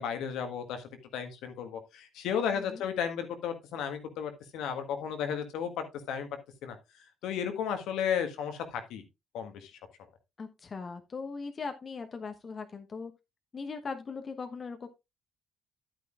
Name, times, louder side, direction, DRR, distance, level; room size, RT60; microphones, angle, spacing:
voice 1, 0.0-6.3 6.6-6.8 7.2-9.0 9.3-9.7, left 8 dB, 65° left, 7 dB, 1.6 m, -34 dB
voice 2, 10.4-13.1 13.5-14.9, left 4 dB, 40° left, 7 dB, 1.1 m, -39 dB
11.5 x 9.1 x 2.5 m, 0.23 s
figure-of-eight pair, 45°, 0 cm